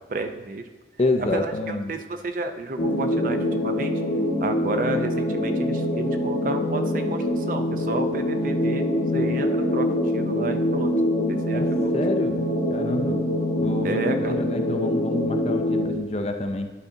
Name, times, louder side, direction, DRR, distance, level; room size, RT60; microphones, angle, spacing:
voice 1, 0.1-0.6 1.3-1.5 1.9-3.9 4.4-8.8 9.1-9.9 10.1-10.9 11.3-11.9 13.8-14.3, right 2 dB, 45° right, 7 dB, 0.5 m, -31 dB
voice 2, 1.0-1.9 11.5-11.7 11.9-12.4 12.7-13.3 13.6-16.7, left 2 dB, 35° left, 5 dB, 0.5 m, -28 dB
sound 1, 2.8-15.8, left 1 dB, 50° left, 1.7 m, -24 dB
11.5 x 3.9 x 3.8 m, 1.2 s
head